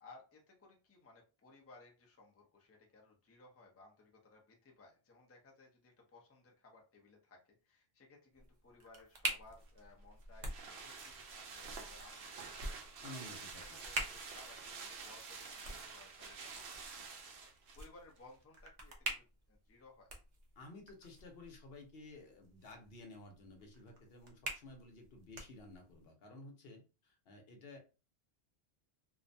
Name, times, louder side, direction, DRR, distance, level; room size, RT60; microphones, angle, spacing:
voice 1, 0.0-13.3 13.6-20.1, left 3 dB, 20° left, 0 dB, 0.4 m, -61 dB
sound 1, 8.3-26.1, right 1 dB, 50° right, 0.7 m, -47 dB
sound 2, 9.7-17.9 18.2-18.3, right 5 dB, 75° right, 0.8 m, -49 dB
voice 2, 13.0-13.8 20.6-27.8, left 2 dB, 70° left, 3 dB, 0.9 m, -53 dB
2.5 x 2.1 x 2.6 m, 0.31 s
omnidirectional pair, 1.1 m